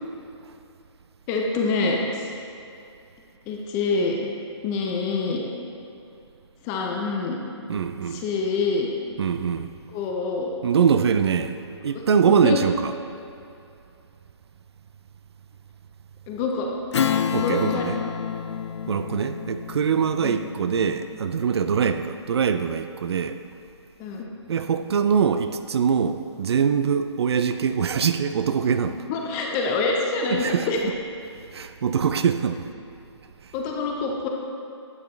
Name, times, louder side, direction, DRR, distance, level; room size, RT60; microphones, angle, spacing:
voice 1, 1.3-2.3 3.5-4.3 4.6-5.4 6.6-7.4 8.1-8.9 9.9-10.5 12.3-12.6 16.3-16.7 17.4-17.9 20.2-20.4 24.0-24.3 28.9-30.9 33.5-34.3, left 3 dB, 15° left, 0 dB, 0.6 m, -26 dB
voice 2, 7.7-8.2 9.2-9.7 10.6-11.6 11.8-12.9 17.3-17.9 18.9-23.4 24.5-29.0 30.3-30.7 31.5-32.6, right 6 dB, 60° right, 9 dB, 0.4 m, -23 dB
Strum, 16.9-21.8, left 7 dB, 70° left, 0.4 m, -29 dB
10.5 x 5.9 x 3.2 m, 2.6 s
hypercardioid pair, 155°, 15 cm